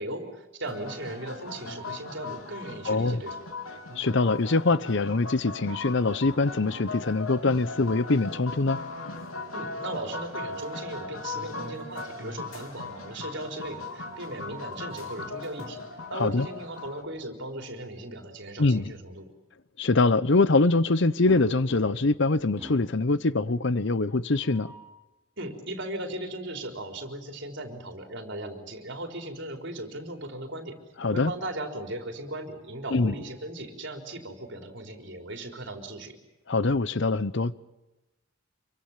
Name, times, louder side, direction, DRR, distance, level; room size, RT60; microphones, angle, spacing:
voice 1, 0.0-3.5 9.5-15.8 16.1-19.3 25.4-30.8 31.0-36.2, right 1 dB, 60° right, 4.1 m, -37 dB
sound 1, 0.7-17.0, left 3 dB, 90° left, 3.9 m, -38 dB
voice 2, 2.9-3.2 4.0-8.8 16.1-16.5 18.6-18.9 19.8-24.7 31.0-31.3 32.9-33.1 36.5-37.5, left 3 dB, 60° left, 0.8 m, -24 dB
sound 2, 21.3-22.2 22.6-23.1 24.3-25.0 27.7-28.7 30.1-30.3 30.7-30.8 32.3-33.6, equal, 10° right, 3.8 m, -49 dB
27.0 x 24.0 x 7.4 m
head